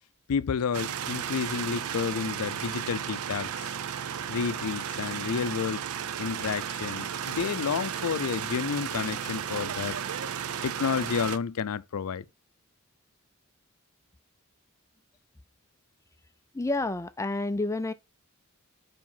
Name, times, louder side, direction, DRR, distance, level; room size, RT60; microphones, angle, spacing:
voice 1, 0.3-3.7 4.3-5.8 6.2-10.0 10.6-12.3, left 6 dB, 85° left, 0.4 m, -30 dB
sound 1, 0.7-11.4, right 8 dB, 75° right, 0.5 m, -34 dB
voice 2, 16.5-17.9, left 2 dB, 15° left, 0.4 m, -29 dB
5.1 x 4.8 x 5.5 m
head